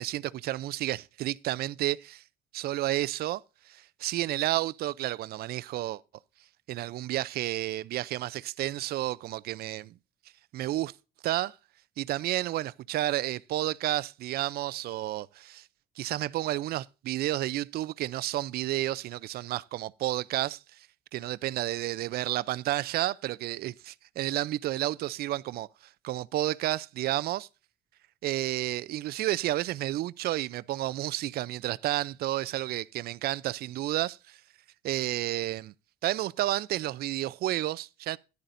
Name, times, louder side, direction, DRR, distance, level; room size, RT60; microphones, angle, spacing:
voice 1, 0.0-2.2 2.5-3.4 3.7-6.0 6.7-9.9 10.5-10.9 11.2-11.5 12.0-15.6 16.0-20.6 21.1-25.7 26.0-27.5 28.2-34.2 34.8-35.7 36.0-38.2, right 15 dB, 65° right, 0.5 m, -31 dB
14.0 x 10.5 x 2.6 m
cardioid pair, 110°, 17 cm